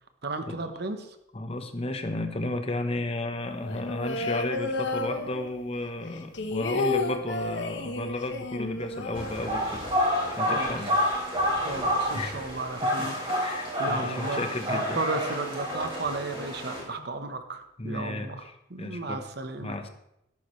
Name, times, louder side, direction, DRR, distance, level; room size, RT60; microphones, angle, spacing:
voice 1, 0.2-1.2 4.2-4.3 10.5-10.8 11.6-13.1 13.8-14.4 14.7-18.4 18.7-19.7, right 2 dB, 55° right, 8 dB, 1.1 m, -34 dB
voice 2, 1.3-9.8 10.3-10.9 12.1-12.4 12.8-13.1 13.4-15.0 17.0-17.1 17.8-19.2 19.6-19.9, left 2 dB, 30° left, 7 dB, 1.0 m, -33 dB
sound 1, 3.6-5.7 6.1-10.0 10.3-10.4 10.7-11.2, left 3 dB, 70° left, 1.1 m, -32 dB
sound 2, 9.1-16.8, equal, 30° right, 3.5 m, -29 dB
13.5 x 11.5 x 3.2 m, 0.83 s
head